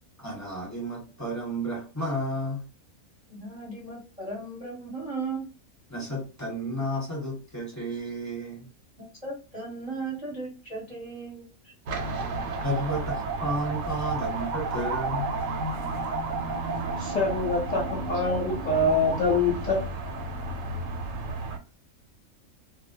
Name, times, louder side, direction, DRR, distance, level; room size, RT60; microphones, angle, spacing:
voice 1, 0.2-2.6 5.9-8.7 12.6-15.3, equal, 15° left, 1.0 m, -32 dB
voice 2, 3.3-5.4 9.0-11.7, right 3 dB, 35° right, 0.7 m, -36 dB
sound 1, 11.9-21.6, right 3 dB, 70° right, 0.9 m, -32 dB
voice 3, 17.0-19.8, left 2 dB, 45° left, 0.6 m, -25 dB
2.2 x 2.1 x 2.8 m
omnidirectional pair, 1.5 m